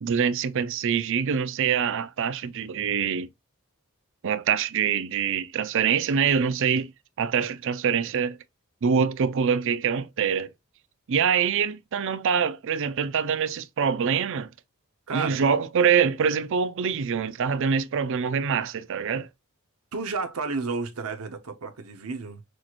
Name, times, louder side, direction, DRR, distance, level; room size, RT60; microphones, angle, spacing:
voice 1, 0.0-3.3 4.2-6.9 7.2-8.4 8.8-10.5 11.1-14.5 15.1-19.3, right 7 dB, 60° right, 0.5 m, -25 dB
voice 2, 15.1-15.4 19.9-22.4, right 4 dB, 85° right, 0.9 m, -31 dB
6.2 x 3.0 x 2.4 m
head